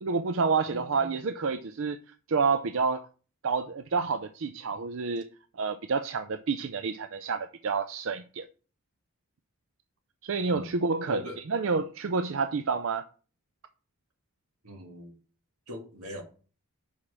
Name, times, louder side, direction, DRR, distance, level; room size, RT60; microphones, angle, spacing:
voice 1, 0.0-2.0 2.3-3.1 3.4-5.3 5.6-8.5 10.2-11.2 11.5-13.0, right 4 dB, 65° right, 0.5 m, -29 dB
voice 2, 0.7-1.1 10.5-10.7 11.1-11.4 14.6-15.2 15.7-16.2, left 1 dB, 85° right, 1.9 m, -40 dB
5.6 x 4.9 x 5.9 m
head